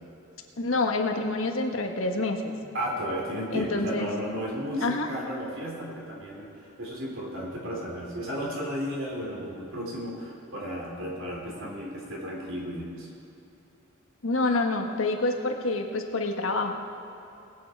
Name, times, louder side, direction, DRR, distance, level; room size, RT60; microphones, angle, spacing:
voice 1, 0.6-2.5 3.5-4.1 4.8-5.1 14.2-16.7, left 2 dB, 75° left, 4 dB, 1.3 m, -27 dB
voice 2, 2.7-13.1, equal, 70° right, -3 dB, 3.6 m, -34 dB
20.0 x 8.9 x 4.6 m, 2.9 s
head